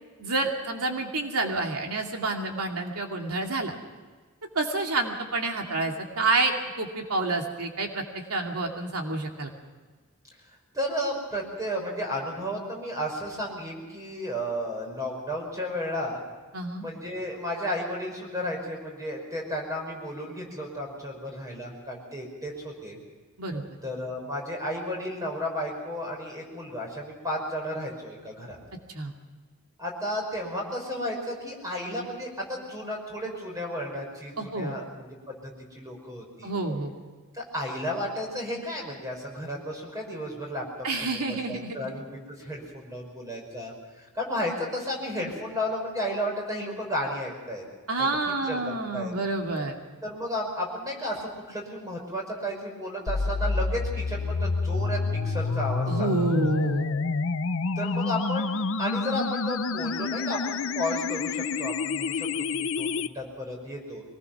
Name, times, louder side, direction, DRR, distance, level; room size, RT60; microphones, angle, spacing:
voice 1, 0.2-3.7 4.5-8.0 8.3-9.5 16.5-16.9 23.4-23.6 28.9-29.1 34.4-34.8 36.4-36.9 40.8-41.9 47.9-49.7 55.9-56.9, right 2 dB, 85° right, 2 dB, 2.6 m, -28 dB
voice 2, 10.7-16.2 16.8-23.0 23.8-28.6 29.8-36.5 37.3-43.7 44.0-47.6 48.0-48.1 48.4-49.1 50.0-56.5 57.8-64.0, equal, 15° right, 0 dB, 5.7 m, -33 dB
sound 1, 53.1-63.1, left 4 dB, 60° left, 0.7 m, -28 dB
23.5 x 19.5 x 6.0 m, 1.4 s
head